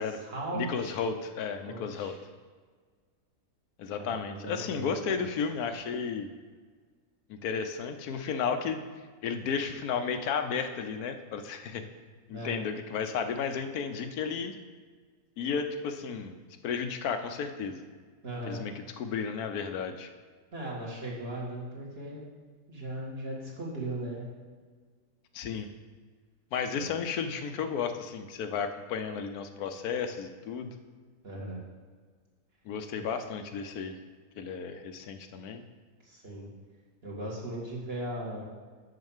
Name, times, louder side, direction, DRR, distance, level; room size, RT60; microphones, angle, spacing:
voice 1, 0.0-1.0 1.7-2.2 4.0-5.2 12.3-12.6 18.2-18.6 20.5-22.2 22.7-24.3 26.7-26.9 31.2-31.6 33.0-33.1 36.0-36.5 37.0-38.5, right 1 dB, 40° right, -4 dB, 2.2 m, -38 dB
voice 2, 0.5-2.2 3.8-6.3 7.3-8.8 9.2-11.8 12.3-14.5 15.4-16.4 16.6-17.8 18.5-20.1 25.3-25.7 26.5-30.7 32.6-34.0 34.4-35.6, left 6 dB, 75° left, 8 dB, 1.2 m, -33 dB
6.4 x 5.8 x 7.2 m, 1.5 s
omnidirectional pair, 1.6 m